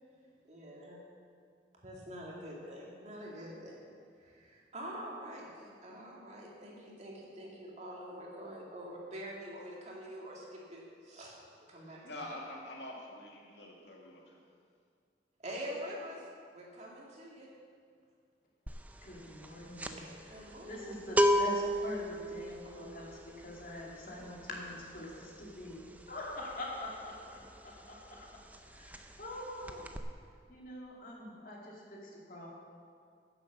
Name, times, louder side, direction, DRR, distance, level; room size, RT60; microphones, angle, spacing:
voice 1, 0.4-1.0 1.7-3.8 4.2-12.2 15.4-17.5 20.0-21.1, equal, 40° right, -3 dB, 2.3 m, -46 dB
voice 2, 11.8-14.4, left 1 dB, 80° left, -1 dB, 2.0 m, -46 dB
sound 1, 18.7-18.9 19.2-27.8 28.0-28.3 28.5-29.4 29.6-30.0, equal, 10° right, 0.5 m, -33 dB
voice 3, 19.0-20.0 20.7-28.2 28.6-30.0 30.5-32.5, left 1 dB, 55° left, -3 dB, 2.5 m, -44 dB
10.0 x 7.5 x 7.3 m, 2.2 s
head